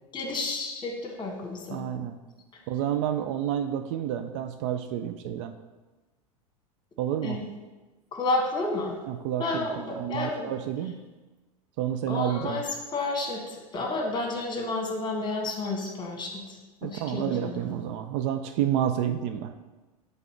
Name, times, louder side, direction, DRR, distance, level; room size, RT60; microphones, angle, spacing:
voice 1, 0.1-1.8 7.2-7.4 8.1-8.9 9.4-10.5 12.1-12.6 12.9-17.7, left 2 dB, 25° left, 1 dB, 1.5 m, -31 dB
voice 2, 1.7-2.2 2.7-5.5 7.0-7.4 9.1-11.1 11.8-12.6 16.8-19.5, right 10 dB, 50° right, 8 dB, 0.4 m, -29 dB
6.9 x 3.3 x 4.5 m, 1.2 s
hypercardioid pair, 85°, 20 cm